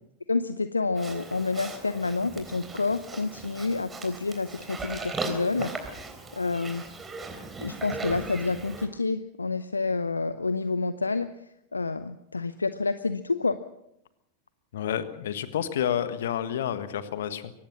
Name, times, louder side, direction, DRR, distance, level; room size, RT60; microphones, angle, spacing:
voice 1, 0.3-6.0 6.3-6.9 7.6-11.3 11.7-13.6, left 3 dB, 80° left, 13 dB, 0.7 m, -29 dB
Livestock farm animals working animals, 0.9-8.9, right 3 dB, 15° right, 3.7 m, -38 dB
voice 2, 14.7-17.5, left 9 dB, 60° left, 12 dB, 1.5 m, -29 dB
23.5 x 18.0 x 6.2 m, 0.81 s
figure-of-eight pair, 90°, 0 cm